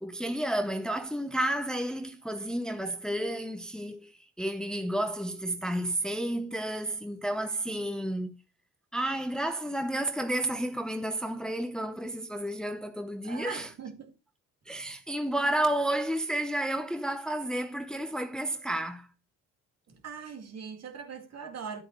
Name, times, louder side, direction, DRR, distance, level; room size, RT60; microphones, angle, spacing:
voice 1, 0.0-8.4 8.9-13.7 14.7-19.1, right 1 dB, ahead, 0.7 m, -31 dB
voice 2, 13.2-14.1 19.9-21.8, right 6 dB, 60° right, 2.3 m, -41 dB
9.9 x 8.2 x 3.1 m
cardioid pair, 90°, 30 cm